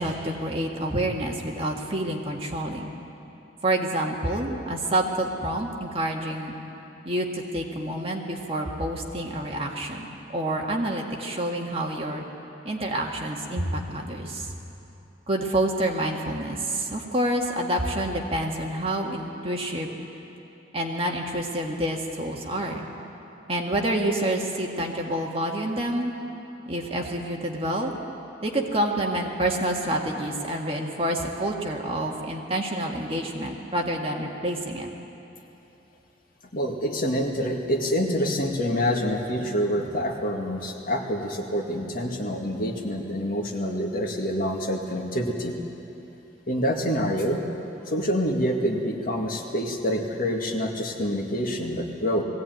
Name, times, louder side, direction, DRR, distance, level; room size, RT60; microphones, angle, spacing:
voice 1, 0.0-2.9 3.6-6.6 7.1-12.2 12.6-14.5 15.3-20.0 20.7-22.9 23.5-26.1 26.7-27.9 28.4-34.9, right 1 dB, 35° right, 0 dB, 1.8 m, -28 dB
voice 2, 36.5-45.6 46.5-47.4 47.9-52.2, equal, 50° left, 1 dB, 2.1 m, -26 dB
20.0 x 16.5 x 9.3 m, 3.0 s
head